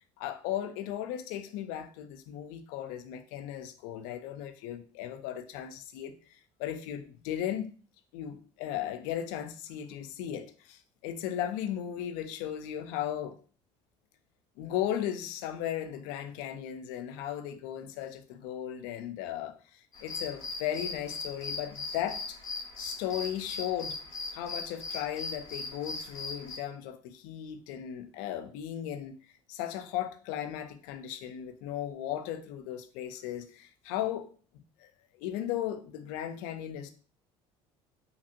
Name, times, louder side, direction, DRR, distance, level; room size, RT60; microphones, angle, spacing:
voice 1, 0.2-7.7 8.1-13.4 14.6-22.4 22.8-24.0 24.3-29.2 29.5-34.3 34.8-34.9 35.2-36.9, left 11 dB, 85° left, 0.4 m, -36 dB
sound 1, 19.9-26.6, left 3 dB, 30° left, 1.0 m, -39 dB
2.9 x 2.7 x 2.5 m
supercardioid pair, 105°, 12 cm